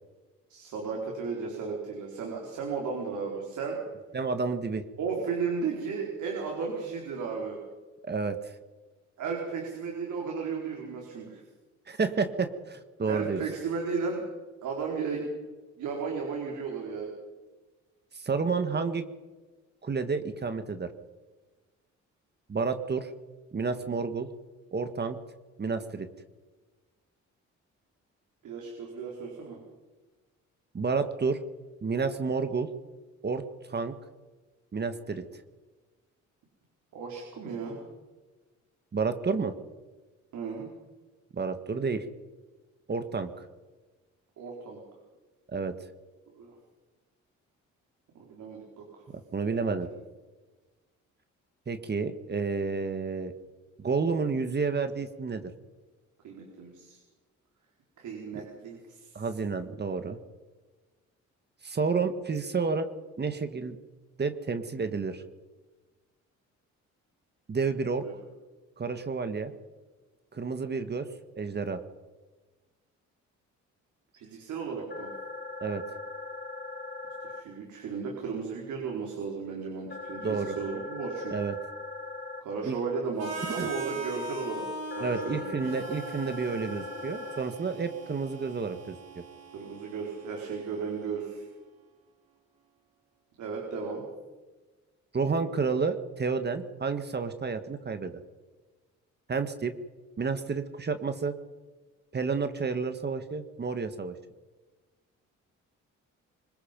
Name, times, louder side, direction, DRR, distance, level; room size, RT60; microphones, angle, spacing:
voice 1, 0.5-3.8 5.0-7.6 9.2-11.4 13.1-14.2 14.6-15.4 15.8-17.1 28.4-29.6 36.9-37.8 40.3-40.7 44.4-44.8 46.3-46.5 48.1-49.0 56.2-57.0 58.0-59.2 68.0-68.1 74.1-75.1 77.3-81.4 82.4-84.6 85.0-85.6 89.5-91.5 93.4-94.0, right 5 dB, 75° right, -1 dB, 4.7 m, -34 dB
voice 2, 4.1-4.8 8.1-8.5 11.9-13.4 18.1-19.1 19.8-20.9 22.5-23.1 23.5-24.3 24.7-25.2 25.6-26.1 30.7-31.4 31.8-32.7 33.2-33.4 33.7-34.0 34.7-35.2 38.9-39.5 41.3-42.1 42.9-43.3 45.5-45.7 49.3-49.9 51.7-53.3 53.8-55.5 58.3-58.4 59.2-60.2 61.6-62.9 63.2-63.8 64.2-65.2 67.5-68.1 68.8-69.5 70.3-71.1 71.4-71.8 75.6-75.8 80.2-80.6 81.3-81.5 82.6-82.8 83.6-83.7 85.0-89.0 95.1-98.2 99.3-99.7 100.2-101.3 102.1-104.1, right 4 dB, 35° right, 9 dB, 1.7 m, -30 dB
sound 1, 74.9-77.4 79.9-82.4 84.9-87.4, left 3 dB, 35° left, 2.7 m, -40 dB
Harmonica, 83.2-91.1, right 2 dB, 55° right, 4.7 m, -41 dB
24.5 x 21.0 x 5.4 m, 1.3 s
cardioid pair, 90°, 30 cm